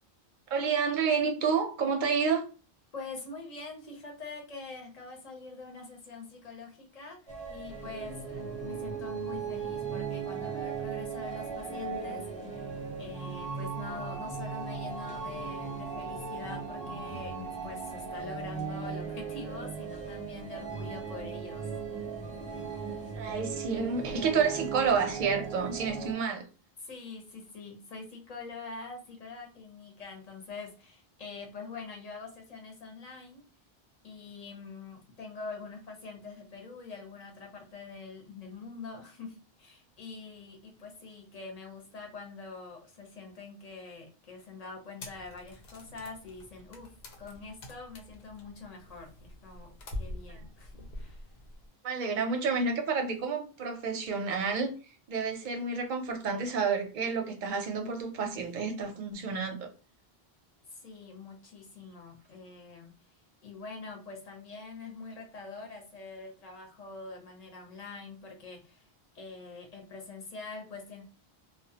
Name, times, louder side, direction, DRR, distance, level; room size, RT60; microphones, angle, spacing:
voice 1, 0.5-2.4 23.1-26.5 51.8-54.7 55.1-59.7, right 5 dB, 60° right, 0.6 m, -29 dB
voice 2, 2.9-21.7 22.2-22.4 26.8-33.4 34.0-51.3 60.7-63.0 63.4-68.9 69.1-71.0, left 4 dB, 45° left, 0.7 m, -45 dB
sound 1, 7.3-26.1, right 5 dB, 10° left, 0.6 m, -37 dB
sound 2, 45.0-51.7, left 1 dB, 90° left, 0.9 m, -45 dB
2.2 x 2.1 x 2.7 m
omnidirectional pair, 1.0 m